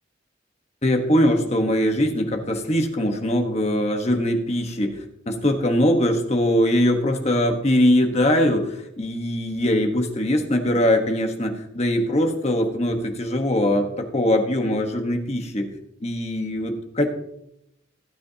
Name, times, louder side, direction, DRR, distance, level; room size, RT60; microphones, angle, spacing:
voice 1, 0.8-5.0 5.3-15.7 16.0-17.1, left 1 dB, 35° left, 4 dB, 1.3 m, -21 dB
17.0 x 8.6 x 2.8 m, 0.80 s
head